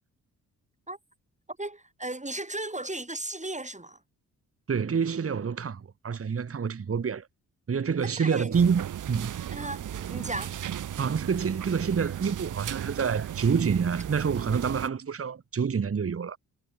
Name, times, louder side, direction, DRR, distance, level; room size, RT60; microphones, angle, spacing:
voice 1, 1.6-4.0 8.2-8.5 9.5-10.5, right 2 dB, 20° right, 7.0 m, -35 dB
voice 2, 4.7-7.3 7.7-9.3 11.0-16.4, right 6 dB, 35° right, 1.3 m, -27 dB
sound 1, 8.5-14.9, right 10 dB, 55° right, 0.8 m, -36 dB
supercardioid pair, 45°, 39 cm